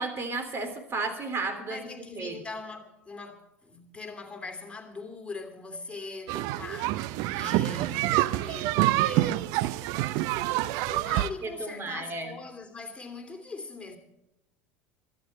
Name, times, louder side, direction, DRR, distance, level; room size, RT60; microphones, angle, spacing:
voice 1, 0.0-1.8 2.1-2.4 11.4-12.3, right 3 dB, 35° right, 3.3 m, -33 dB
voice 2, 1.6-9.5 10.8-14.0, left 3 dB, 15° left, 2.9 m, -41 dB
sound 1, 6.3-11.3, right 16 dB, 55° right, 0.6 m, -27 dB
24.5 x 9.3 x 4.4 m
figure-of-eight pair, 70°, 7 cm